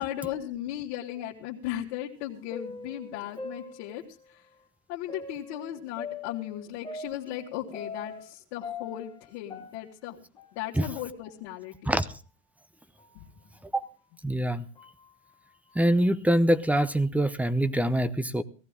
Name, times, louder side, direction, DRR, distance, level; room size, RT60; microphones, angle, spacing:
voice 1, 0.0-4.5 4.9-10.2 10.5-11.9 13.1-13.3, left 12 dB, 90° left, -5 dB, 2.0 m, -36 dB
sound 1, 2.1-4.3 5.1-8.3 8.6-11.0 11.2-11.3 12.1-12.2 13.0-13.2 13.8-13.9 14.8-15.1, left 4 dB, 15° left, 2.0 m, -42 dB
voice 2, 14.2-14.7 15.7-18.4, right 1 dB, 5° right, 15 dB, 0.8 m, -24 dB
18.0 x 14.5 x 3.7 m, 0.36 s
cardioid pair, 125°, 31 cm